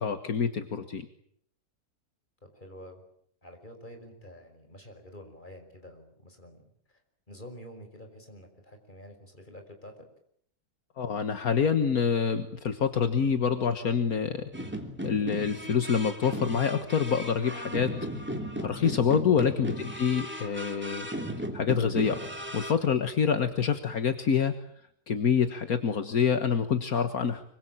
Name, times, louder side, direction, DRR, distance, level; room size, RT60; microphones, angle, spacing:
voice 1, 0.0-1.1 11.0-14.5 15.0-17.9 18.6-21.1 21.5-22.2 22.5-24.5 25.1-27.4, left 7 dB, 70° left, 8 dB, 1.9 m, -26 dB
voice 2, 2.5-3.0 3.4-7.0 7.3-10.1 19.7-19.9, equal, 30° left, 5 dB, 5.7 m, -48 dB
sound 1, 14.5-22.7, equal, 5° right, 3.0 m, -36 dB
25.5 x 24.5 x 8.9 m, 0.68 s
omnidirectional pair, 1.6 m